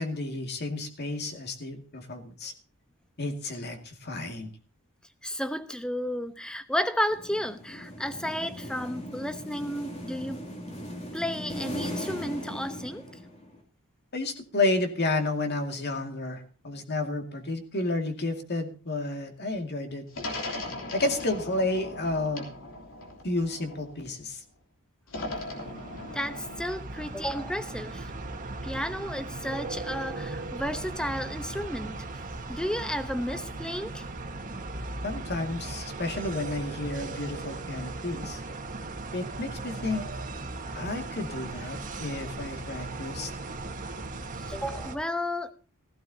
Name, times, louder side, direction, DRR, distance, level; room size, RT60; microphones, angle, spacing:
voice 1, 0.0-2.5 3.2-4.5 14.1-20.1 20.9-22.5 23.2-24.4 35.0-38.4 39.1-40.0 40.7-43.3, left 2 dB, 50° left, 2.2 m, -31 dB
voice 2, 5.2-10.5 11.1-13.1 26.1-28.1 28.6-32.0 32.5-34.0 44.5-45.5, equal, 5° left, 0.9 m, -32 dB
sound 1, 7.1-13.6, equal, 30° left, 2.8 m, -39 dB
sound 2, 20.1-24.2 25.1-26.7, left 2 dB, 65° left, 3.3 m, -38 dB
sound 3, 25.3-45.0, right 2 dB, 35° right, 1.7 m, -38 dB
16.0 x 15.5 x 2.8 m
head